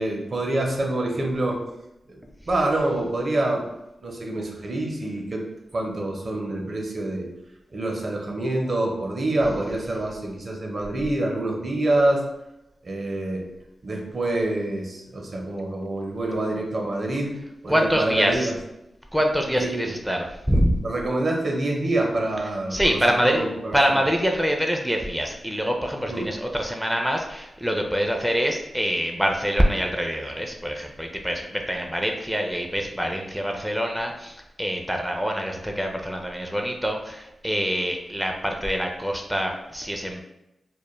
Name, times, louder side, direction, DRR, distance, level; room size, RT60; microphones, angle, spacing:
voice 1, 0.0-1.6 2.1-2.2 2.5-3.7 4.0-5.4 5.7-7.3 7.7-12.2 12.8-13.4 13.8-18.5 19.6-19.9 20.8-23.0 23.2-23.8 26.1-26.3, right 1 dB, 55° right, 1 dB, 0.5 m, -26 dB
voice 2, 17.7-18.5 19.1-20.8 22.4-23.4 23.7-40.2, equal, ahead, 2 dB, 0.4 m, -25 dB
2.2 x 2.1 x 3.0 m, 0.90 s
cardioid pair, 45°, 0 cm